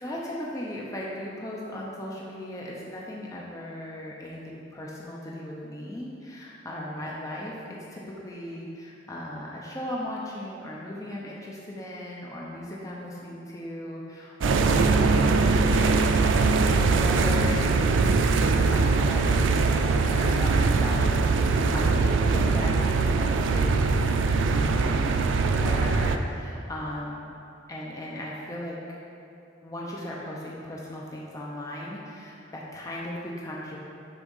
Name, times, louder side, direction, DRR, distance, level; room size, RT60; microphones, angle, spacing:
voice 1, 0.0-7.6 7.9-24.1 24.5-25.2 25.6-27.3 27.7-28.8 29.6-33.8, left 1 dB, 20° left, -4 dB, 0.6 m, -37 dB
sound 1, 14.4-26.2, right 4 dB, 90° right, 0.4 m, -22 dB
7.1 x 3.7 x 5.4 m, 2.7 s
head